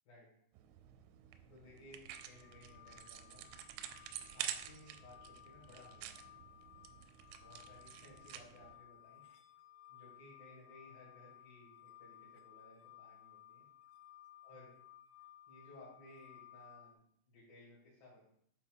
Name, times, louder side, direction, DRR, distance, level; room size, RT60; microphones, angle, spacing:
sound 1, 0.5-8.8, right 10 dB, 85° right, 2.7 m, -49 dB
voice 1, 1.5-3.4 4.2-6.3 7.3-9.2 9.9-13.6 14.4-14.8 15.5-17.0 17.3-18.3, left 1 dB, 55° left, -7 dB, 3.1 m, -59 dB
sound 2, 2.1-16.9, left 12 dB, 85° left, 2.9 m, -59 dB
8.3 x 4.4 x 3.6 m, 0.69 s
omnidirectional pair, 5.6 m